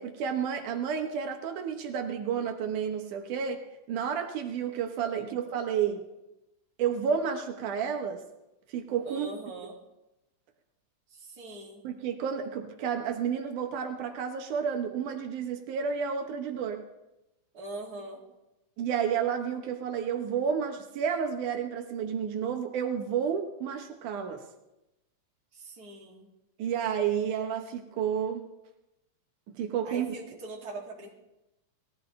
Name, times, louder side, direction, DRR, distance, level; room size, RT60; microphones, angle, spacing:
voice 1, 0.0-6.1 6.8-8.2 8.7-9.3 11.8-16.9 18.8-24.4 26.6-28.5 29.5-30.1, right 7 dB, 85° right, 4 dB, 2.7 m, -31 dB
voice 2, 9.0-9.8 11.1-11.8 17.5-18.2 25.5-26.3 29.8-31.1, right 2 dB, 35° right, -2 dB, 2.8 m, -42 dB
20.0 x 14.5 x 3.3 m, 0.94 s
omnidirectional pair, 3.5 m